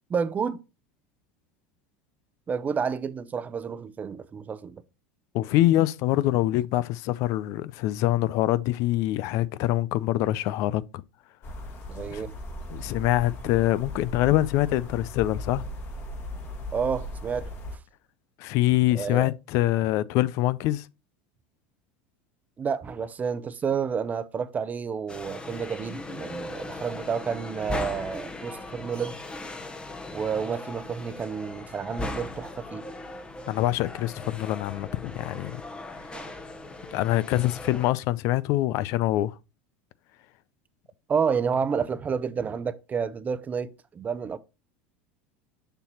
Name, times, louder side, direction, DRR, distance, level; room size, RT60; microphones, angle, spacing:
voice 1, 0.1-0.6 2.5-4.8 11.9-12.3 16.7-17.5 18.9-19.3 22.6-29.2 30.1-32.8 36.1-36.3 41.1-44.4, right 6 dB, 25° right, 0.7 m, -30 dB
voice 2, 5.3-11.0 12.1-12.2 12.7-15.7 18.4-20.9 33.5-35.6 36.9-39.3, left 15 dB, 60° left, 0.5 m, -25 dB
sound 1, 11.4-17.8, left 1 dB, 40° left, 1.9 m, -37 dB
sound 2, 25.1-37.9, left 2 dB, 15° left, 1.0 m, -38 dB
6.7 x 5.8 x 2.9 m
supercardioid pair, 100°, 6 cm